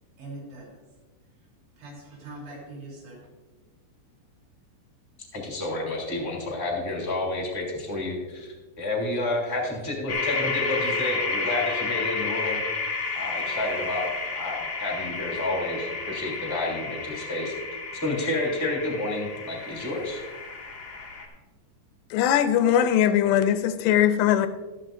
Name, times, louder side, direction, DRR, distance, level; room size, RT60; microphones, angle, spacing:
voice 1, 0.2-0.8 1.8-3.2, right 2 dB, 80° right, -3 dB, 5.4 m, -42 dB
voice 2, 5.3-12.6 13.1-14.1 14.3-17.5 18.0-20.2, left 2 dB, 5° left, -2 dB, 1.9 m, -30 dB
sound 1, 10.1-21.3, left 4 dB, 60° left, 1.4 m, -31 dB
voice 3, 22.1-24.5, left 10 dB, 85° left, 10 dB, 2.8 m, -20 dB
13.5 x 12.0 x 2.6 m, 1.3 s
omnidirectional pair, 4.8 m